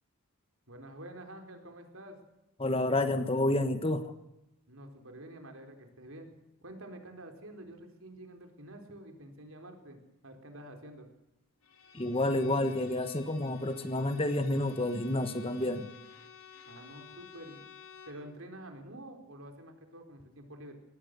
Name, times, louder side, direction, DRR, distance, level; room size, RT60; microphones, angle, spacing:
voice 1, 0.7-2.2 4.7-6.3 6.6-10.0 10.2-11.1 16.7-17.6 18.1-20.7, right 1 dB, 65° right, 5 dB, 4.3 m, -48 dB
voice 2, 2.6-4.1 11.9-15.9, left 1 dB, 25° left, 10 dB, 1.3 m, -29 dB
Bowed string instrument, 11.6-18.3, left 7 dB, 75° left, 3.8 m, -53 dB
23.0 x 18.5 x 6.8 m, 0.89 s
head